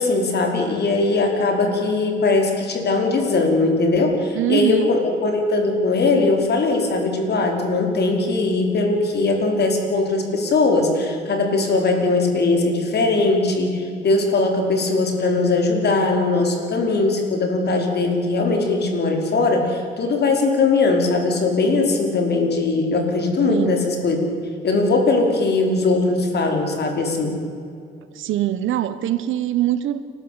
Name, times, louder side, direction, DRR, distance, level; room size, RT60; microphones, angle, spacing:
voice 1, 0.0-24.2 24.6-27.4, left 3 dB, 55° left, 3 dB, 5.2 m, -20 dB
voice 2, 4.3-4.9 23.5-23.8 28.1-30.0, right 12 dB, 80° right, 13 dB, 1.5 m, -22 dB
30.0 x 12.5 x 8.9 m, 2.4 s
cardioid pair, 90°, 20 cm